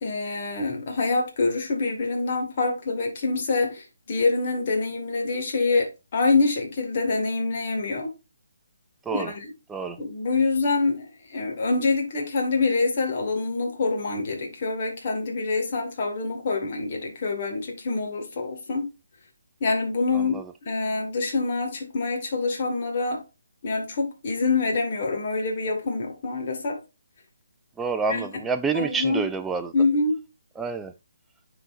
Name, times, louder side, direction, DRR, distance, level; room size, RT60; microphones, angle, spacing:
voice 1, 0.0-8.1 9.1-9.5 10.0-18.9 19.6-23.2 23.6-26.8 28.1-28.3 28.7-29.2 29.7-30.2, left 3 dB, 40° left, 1.7 m, -26 dB
voice 2, 20.1-20.4 27.8-29.7 30.6-30.9, right 4 dB, 5° right, 0.4 m, -28 dB
9.5 x 4.0 x 2.5 m
figure-of-eight pair, 145°, 0 cm